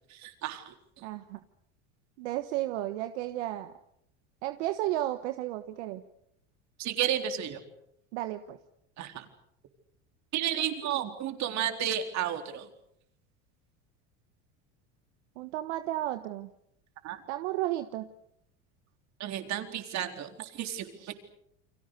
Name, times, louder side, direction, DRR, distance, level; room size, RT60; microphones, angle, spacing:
voice 1, 0.1-0.7 6.8-7.6 9.0-9.2 10.3-12.7 17.0-17.2 19.2-20.9, right 10 dB, 50° right, 6 dB, 4.0 m, -32 dB
voice 2, 1.0-1.4 2.2-3.7 4.4-6.0 8.1-8.6 15.4-16.5 17.3-18.1 21.0-21.1, right 14 dB, 75° right, 9 dB, 1.4 m, -33 dB
30.0 x 23.5 x 6.7 m, 0.74 s
supercardioid pair, 110°, 35 cm